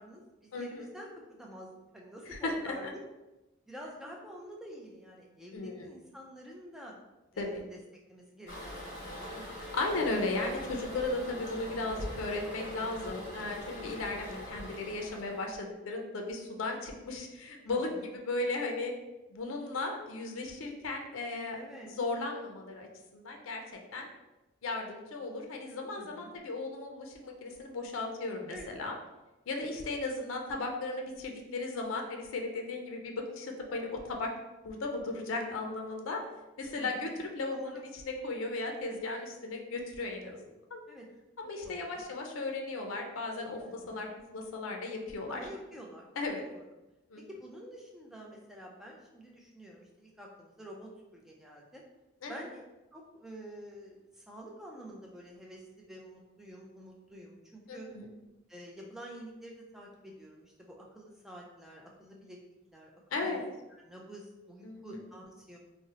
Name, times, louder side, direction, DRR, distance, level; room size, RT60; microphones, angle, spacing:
voice 1, 0.0-2.9 3.7-6.9 7.3-7.8 8.1-9.5 17.7-18.1 21.5-21.9 26.0-26.3 28.5-28.7 36.8-37.1 37.5-37.8 40.9-41.1 41.6-42.1 43.6-44.0 45.3-46.1 46.4-46.7 47.3-51.8 52.3-52.6 52.9-57.9 58.5-62.4 62.7-63.4 63.8-65.6, equal, ahead, -2 dB, 0.4 m, -48 dB
voice 2, 0.5-0.9 2.4-2.9 5.5-5.9 7.4-7.6 9.7-18.9 19.3-21.6 21.9-22.9 23.1-23.6 23.9-24.1 24.6-28.9 29.5-34.3 34.6-36.2 36.6-37.7 38.0-40.8 41.4-44.1 44.3-45.4 46.2-46.4 47.1-47.2 52.2-52.4 57.7-58.1 63.1-63.4 64.6-65.0, left 2 dB, 80° left, 2 dB, 0.5 m, -36 dB
Toilet flush, 8.5-15.6, left 1 dB, 40° left, 0.9 m, -42 dB
2.6 x 2.0 x 3.8 m, 1.0 s
head